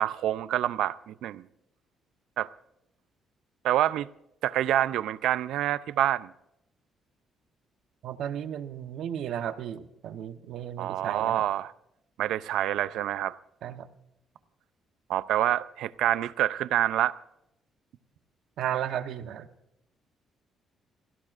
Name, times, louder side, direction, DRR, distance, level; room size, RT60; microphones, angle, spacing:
voice 1, 0.0-1.5 2.4-2.5 3.6-4.1 4.4-6.3 10.8-11.7 12.2-13.4 15.1-17.1, right 12 dB, 85° right, 0.5 m, -27 dB
voice 2, 8.0-11.4 13.6-13.9 18.6-19.5, right 10 dB, 70° right, 1.0 m, -34 dB
30.0 x 17.0 x 2.5 m
cardioid pair, 165°, 0 cm